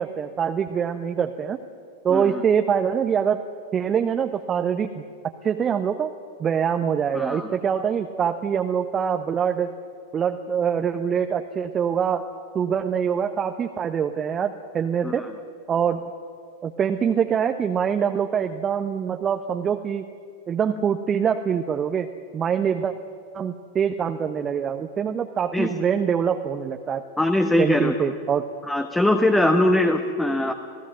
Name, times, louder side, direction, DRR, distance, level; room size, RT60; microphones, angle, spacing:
voice 1, 0.0-1.6 2.0-3.4 3.7-5.0 5.4-6.1 6.4-9.7 10.1-12.3 12.5-15.2 15.7-16.1 16.6-20.0 20.5-22.1 22.3-22.9 23.3-27.0 27.6-28.5, right 7 dB, 25° right, 7 dB, 1.1 m, -24 dB
voice 2, 2.1-2.4 7.1-7.6 15.0-15.1 25.5-25.7 27.2-27.9 28.7-30.5, left 1 dB, 5° left, 6 dB, 1.3 m, -21 dB
27.5 x 17.5 x 7.6 m, 2.2 s
figure-of-eight pair, 90°, 0 cm